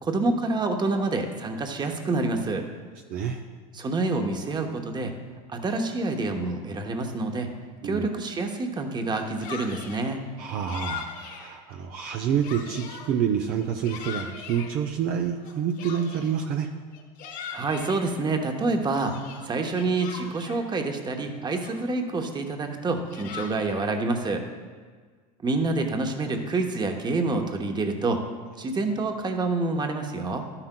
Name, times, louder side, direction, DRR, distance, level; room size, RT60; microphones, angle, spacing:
voice 1, 0.0-2.6 3.7-5.1 5.5-7.5 7.8-10.3 17.5-19.2 19.4-24.4 25.4-28.2 28.6-30.4, right 3 dB, 20° right, 4 dB, 1.0 m, -27 dB
voice 2, 3.1-3.4 7.8-8.1 10.4-16.7, right 8 dB, 50° right, 3 dB, 0.6 m, -28 dB
Yell, 9.0-10.0 10.7-11.5 12.0-13.1 13.6-14.7 15.4-16.4 16.9-18.0 18.6-20.6 21.2-21.3 21.6-22.1 22.8-23.9, left 7 dB, 55° left, 2.0 m, -40 dB
11.5 x 9.8 x 2.2 m, 1.6 s
supercardioid pair, 105°, 20 cm